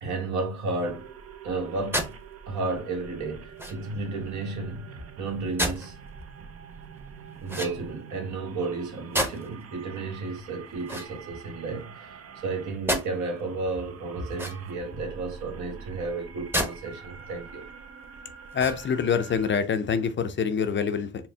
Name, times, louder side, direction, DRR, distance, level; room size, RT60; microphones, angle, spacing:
voice 1, 0.0-1.1 1.4-6.0 7.4-17.7, right 3 dB, 75° right, 1.3 m, -33 dB
sound 1, 0.8-19.6, right 6 dB, 50° right, 0.6 m, -46 dB
sound 2, 1.9-2.2 3.6-4.0 5.6-5.9 7.5-8.1 9.1-9.6 10.8-11.7 12.9-13.1 14.3-14.9 16.5-16.8 17.3-17.4 18.5-19.1, equal, 5° right, 0.8 m, -30 dB
voice 2, 18.5-21.3, left 6 dB, 40° left, 0.5 m, -26 dB
4.3 x 2.0 x 3.5 m
cardioid pair, 90°, 30 cm